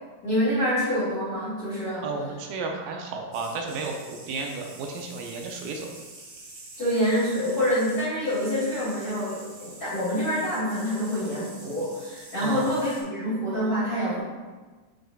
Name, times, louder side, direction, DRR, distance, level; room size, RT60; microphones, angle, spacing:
voice 1, 0.2-2.1 6.8-14.2, equal, 30° left, -10 dB, 2.4 m, -26 dB
voice 2, 2.0-5.9 12.4-12.7, right 3 dB, 80° right, 1 dB, 2.4 m, -33 dB
sound 1, 3.3-13.0, right 2 dB, 60° right, 2.9 m, -46 dB
8.8 x 6.5 x 2.3 m, 1.3 s
omnidirectional pair, 4.1 m